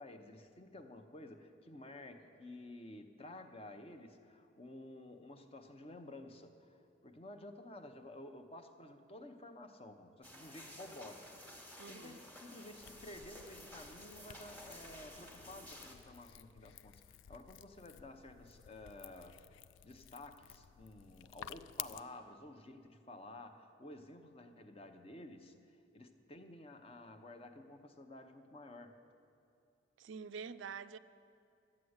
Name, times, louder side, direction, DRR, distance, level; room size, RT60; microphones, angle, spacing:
voice 1, 0.0-11.6 11.9-19.4 19.8-29.0, left 1 dB, 30° left, 0.8 m, -52 dB
sound 1, 10.2-16.0, left 1 dB, 10° left, 1.3 m, -53 dB
voice 2, 11.8-12.2 30.0-31.0, right 6 dB, 80° right, 0.4 m, -46 dB
sound 2, 12.8-22.0, left 11 dB, 85° left, 0.3 m, -53 dB
12.5 x 8.7 x 8.0 m
head